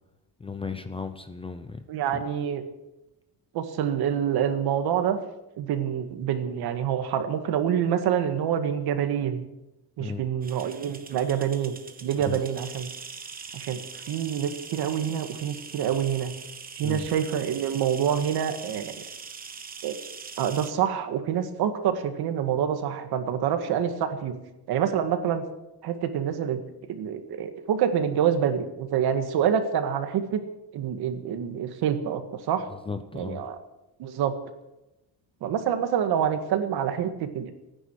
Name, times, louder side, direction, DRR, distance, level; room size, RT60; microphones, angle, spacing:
voice 1, 0.4-1.8 2.1-2.2 10.0-10.2 12.2-12.4 16.8-17.1 32.7-33.4, left 5 dB, 15° left, 9 dB, 0.6 m, -35 dB
voice 2, 1.9-2.6 3.5-5.2 5.6-9.5 10.0-11.8 12.0-12.9 13.5-16.3 16.8-19.0 19.8-20.0 20.4-24.4 24.7-25.4 25.8-26.6 26.9-30.4 30.7-32.7 33.1-33.6 34.0-34.3 35.4-37.5, right 9 dB, 65° right, 7 dB, 2.0 m, -26 dB
sound 1, 10.4-20.7, right 5 dB, 20° right, 1.1 m, -42 dB
28.5 x 10.0 x 4.8 m, 0.96 s
cardioid pair, 170°, 41 cm